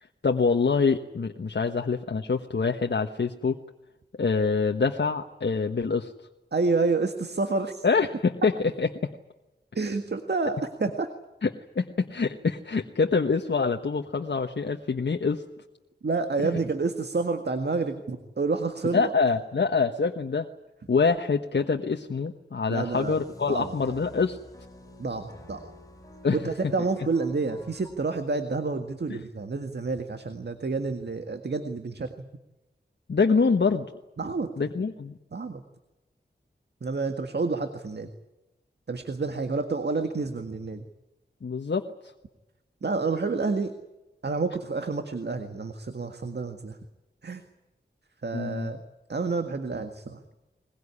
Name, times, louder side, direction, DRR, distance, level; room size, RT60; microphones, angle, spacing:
voice 1, 0.2-3.6 4.2-6.1 7.8-8.5 8.8-8.9 11.4-11.5 11.7-15.4 18.9-20.5 20.9-24.4 26.2-26.4 33.1-33.9 34.6-35.2 41.4-41.8 48.3-48.7, left 4 dB, 70° left, 4 dB, 1.3 m, -25 dB
voice 2, 6.5-7.8 9.7-11.1 16.0-19.1 22.7-23.1 23.5-23.9 25.0-25.6 26.3-32.3 34.2-34.5 35.3-35.6 36.8-38.1 38.9-40.8 42.8-43.7 44.2-46.8 47.2-47.4 48.2-48.8 49.1-50.2, right 3 dB, 65° right, 7 dB, 1.8 m, -29 dB
sound 1, 22.9-27.9, left 1 dB, 20° left, 7.0 m, -49 dB
22.0 x 21.0 x 9.9 m, 1.0 s
wide cardioid pair, 80°, 18 cm